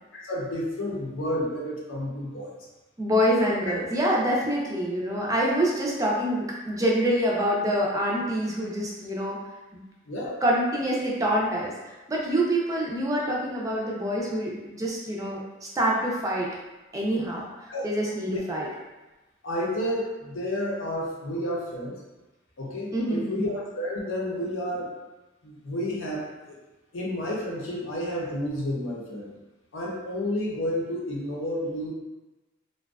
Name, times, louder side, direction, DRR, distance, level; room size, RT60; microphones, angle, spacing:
voice 1, 0.1-2.5 10.0-10.4 17.7-17.9 19.4-21.9 22.6-24.9 25.4-26.6 26.9-29.3 29.7-31.9, left 1 dB, 90° left, -3 dB, 0.6 m, -31 dB
voice 2, 3.0-9.4 10.4-15.4 15.8-16.5 16.9-17.5 17.8-18.7 22.9-23.4, equal, 15° right, -3 dB, 0.4 m, -26 dB
2.5 x 2.2 x 2.3 m, 1.1 s
head